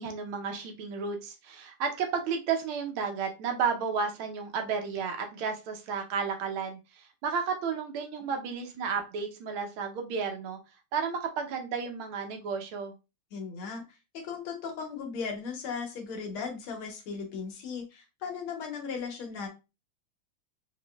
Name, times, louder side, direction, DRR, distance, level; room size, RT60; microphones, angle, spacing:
voice 1, 0.0-10.6 10.9-12.9, right 6 dB, 80° right, 5 dB, 1.6 m, -32 dB
voice 2, 13.3-13.8 14.1-19.5, left 5 dB, 80° left, 2 dB, 1.8 m, -37 dB
5.1 x 2.9 x 2.3 m, 0.28 s
omnidirectional pair, 2.3 m